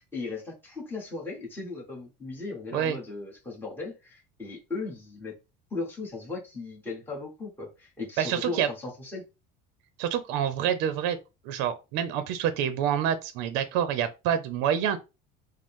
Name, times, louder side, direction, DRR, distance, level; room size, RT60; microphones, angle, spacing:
voice 1, 0.0-5.3 5.7-9.2, left 3 dB, 10° left, 1.4 m, -37 dB
voice 2, 8.2-8.7 10.0-11.2 11.4-15.0, right 9 dB, 65° right, 0.6 m, -27 dB
5.0 x 2.1 x 3.6 m
cardioid pair, 145°, 20 cm